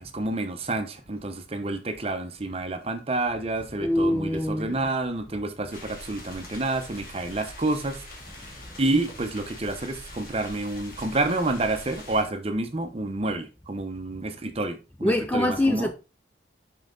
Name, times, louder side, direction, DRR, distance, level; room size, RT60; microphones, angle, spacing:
voice 1, 0.0-8.0 8.8-15.9, right 2 dB, 30° right, 0.8 m, -29 dB
voice 2, 3.8-4.8 15.0-15.9, left 1 dB, 10° left, 0.4 m, -24 dB
sound 1, 5.7-12.2, left 1 dB, 50° left, 2.2 m, -43 dB
5.6 x 5.4 x 3.9 m
head